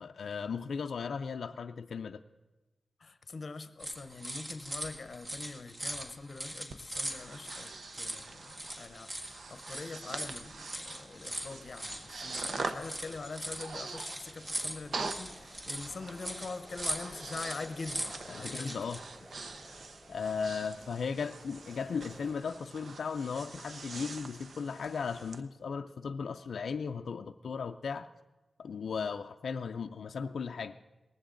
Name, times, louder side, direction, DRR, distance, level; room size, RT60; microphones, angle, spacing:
voice 1, 0.0-2.2 18.3-19.0 20.1-28.1 28.6-30.8, left 5 dB, 85° left, 0.4 m, -36 dB
voice 2, 3.0-18.8, left 4 dB, 50° left, 0.7 m, -44 dB
sound 1, 3.8-19.0, right 1 dB, 35° right, 1.7 m, -41 dB
Breathing, 6.7-25.4, right 3 dB, 60° right, 0.8 m, -45 dB
sound 2, 9.5-22.3, equal, 5° right, 5.0 m, -55 dB
19.0 x 15.5 x 3.8 m
wide cardioid pair, 165°, 0 cm